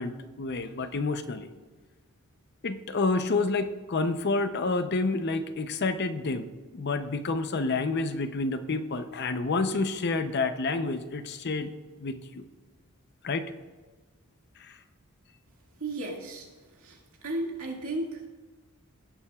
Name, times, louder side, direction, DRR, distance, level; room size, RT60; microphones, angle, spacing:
voice 1, 0.0-1.5 2.6-11.7 12.0-12.4 13.2-13.5 14.6-14.8, left 3 dB, 50° left, 9 dB, 0.6 m, -29 dB
voice 2, 15.8-16.5 16.8-18.3, right 2 dB, 70° right, 0 dB, 2.0 m, -34 dB
17.5 x 8.5 x 2.3 m, 1.3 s
head